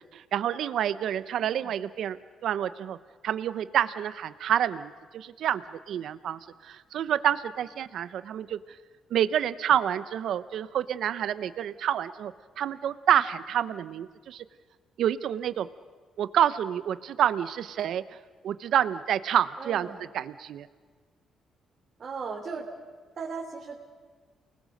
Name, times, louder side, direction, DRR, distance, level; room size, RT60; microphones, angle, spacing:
voice 1, 0.0-3.0 3.2-8.6 9.1-14.4 15.0-15.7 16.2-18.2 18.4-19.9 20.1-20.7, right 10 dB, 70° right, 13 dB, 0.7 m, -28 dB
voice 2, 1.3-1.7 19.6-20.0 22.0-22.7 23.2-23.8, right 5 dB, 45° right, -2 dB, 3.0 m, -37 dB
29.5 x 20.0 x 6.5 m, 1.5 s
cardioid pair, 90°, 0 cm